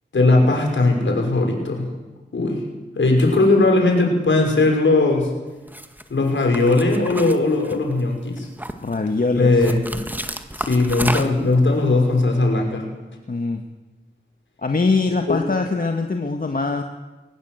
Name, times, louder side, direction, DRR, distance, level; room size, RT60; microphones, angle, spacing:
voice 1, 0.1-1.9 2.3-2.6 3.0-5.3 6.1-8.5 9.3-9.8 10.6-12.8 15.3-15.4, left 2 dB, 85° left, 1 dB, 5.8 m, -18 dB
sound 1, 5.7-6.0 6.5-8.0 8.4-9.0 9.6-11.5, right 1 dB, 10° right, 1.8 m, -30 dB
voice 2, 8.8-9.6 13.3-13.6 14.6-16.8, left 3 dB, 50° left, 4 dB, 1.7 m, -22 dB
22.5 x 19.5 x 8.0 m, 1.1 s
wide cardioid pair, 65°, 19 cm